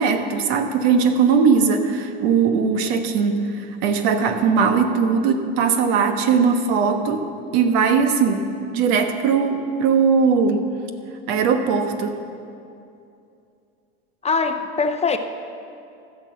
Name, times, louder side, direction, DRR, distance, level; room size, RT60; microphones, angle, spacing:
voice 1, 0.0-7.3 7.5-8.4 8.7-10.7 11.3-12.2, right 5 dB, 75° right, 7 dB, 1.2 m, -19 dB
voice 2, 14.2-15.2, left 4 dB, 20° left, 7 dB, 0.6 m, -22 dB
15.0 x 6.3 x 7.5 m, 2.6 s
supercardioid pair, 110°, 32 cm